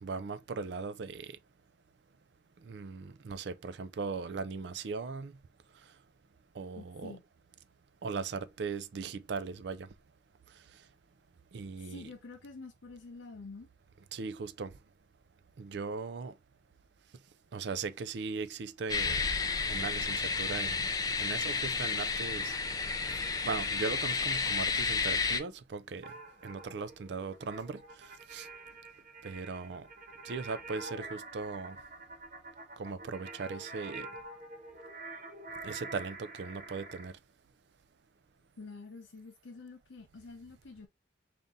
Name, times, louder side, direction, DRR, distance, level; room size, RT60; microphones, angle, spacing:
voice 1, 0.0-1.3 2.6-5.3 6.5-7.2 8.0-9.9 11.5-12.1 14.1-14.7 15.6-16.3 17.5-19.2 19.7-20.9 21.2-22.6 23.4-26.1 26.4-28.5 29.2-29.9 30.2-31.8 32.8-34.1 35.6-37.1, right 4 dB, 65° right, 0.4 m, -38 dB
voice 2, 6.8-7.2 11.8-13.7 38.6-40.9, left 3 dB, 85° left, 0.7 m, -48 dB
sound 1, 18.9-25.4, left 4 dB, 20° left, 0.4 m, -31 dB
sound 2, 22.3-24.4 26.0-37.1, right 2 dB, 45° right, 1.1 m, -47 dB
3.6 x 2.6 x 4.0 m
head